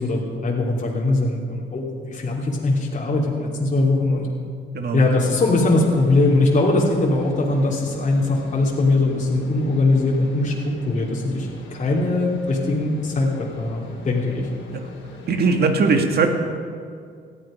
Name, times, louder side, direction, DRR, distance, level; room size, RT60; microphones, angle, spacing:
voice 1, 0.0-4.3 4.9-14.5, left 2 dB, 40° left, -4 dB, 3.0 m, -21 dB
voice 2, 4.7-5.0 14.7-14.9 15.3-16.3, right 4 dB, 55° right, 4 dB, 2.2 m, -20 dB
sound 1, 5.0-15.7, left 3 dB, 80° left, 3.4 m, -40 dB
18.5 x 13.0 x 5.2 m, 2.1 s
cardioid pair, 90°, 20 cm